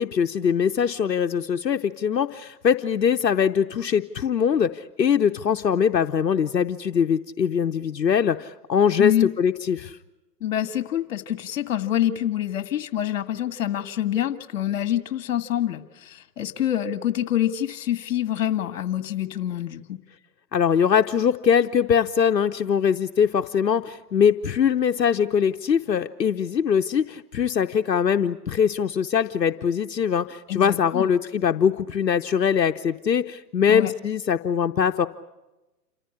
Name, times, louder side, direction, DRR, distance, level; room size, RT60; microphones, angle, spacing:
voice 1, 0.0-10.0 20.5-35.1, left 7 dB, 90° left, 6 dB, 0.9 m, -22 dB
voice 2, 9.0-9.3 10.4-20.0 30.5-31.1 33.7-33.9, left 11 dB, 55° left, 12 dB, 1.9 m, -26 dB
28.0 x 14.5 x 9.8 m, 1.0 s
hypercardioid pair, 130°, 49 cm